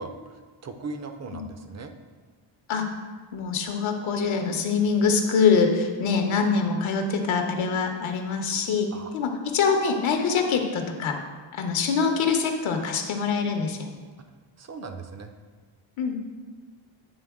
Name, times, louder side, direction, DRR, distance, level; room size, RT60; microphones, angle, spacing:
voice 1, 0.0-1.9 8.9-9.1 14.6-15.3, right 3 dB, 35° right, 7 dB, 0.4 m, -38 dB
voice 2, 3.3-8.9 9.1-11.2 11.5-13.9 16.0-16.2, left 5 dB, 80° left, 4 dB, 0.8 m, -24 dB
8.8 x 3.6 x 3.5 m, 1.4 s
wide cardioid pair, 140°, 47 cm